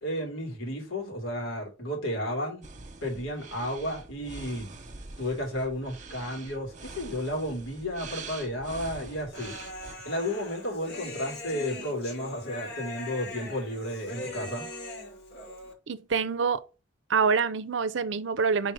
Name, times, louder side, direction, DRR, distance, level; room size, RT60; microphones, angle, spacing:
voice 1, 0.0-2.6 3.0-4.7 5.2-9.5 10.0-14.7, equal, 85° left, 2.8 m, -32 dB
sound 1, 2.6-9.9, right 3 dB, 35° right, 1.0 m, -44 dB
Human voice, 9.3-15.7, left 2 dB, 55° left, 1.9 m, -41 dB
voice 2, 15.9-16.6 17.1-18.7, right 5 dB, 65° right, 0.6 m, -26 dB
5.3 x 4.0 x 4.8 m
head